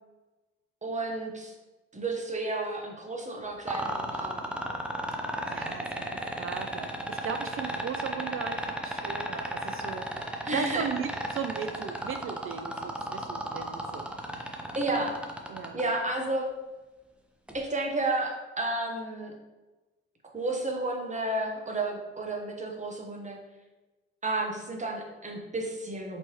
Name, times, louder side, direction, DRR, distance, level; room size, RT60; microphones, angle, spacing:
voice 1, 0.8-1.5 1.9-4.4 10.4-10.8 14.7-15.1 15.7-16.5 17.5-19.4 20.3-23.4 24.2-26.2, right 2 dB, 25° right, 1 dB, 1.1 m, -31 dB
sound 1, 3.7-15.8 17.5-17.6, right 1 dB, 5° right, 0.7 m, -33 dB
voice 2, 5.2-10.1 10.3-14.1 14.4-15.1 15.5-15.8, right 6 dB, 45° right, 7 dB, 0.4 m, -37 dB
4.2 x 3.2 x 3.0 m, 1.1 s
hypercardioid pair, 45°, 30 cm